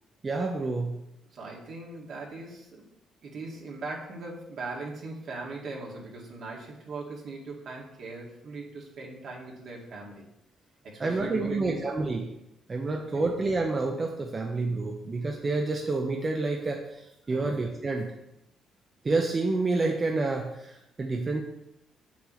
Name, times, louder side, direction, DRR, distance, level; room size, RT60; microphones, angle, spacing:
voice 1, 0.2-1.0 11.0-12.3 12.7-18.1 19.0-21.4, right 3 dB, 30° right, 1 dB, 0.7 m, -28 dB
voice 2, 1.3-2.9 3.2-10.3 10.8-11.8 12.9-13.3 17.3-17.5, right 3 dB, 60° right, -2 dB, 2.0 m, -39 dB
8.0 x 7.0 x 3.1 m, 0.85 s
cardioid pair, 120°, 0 cm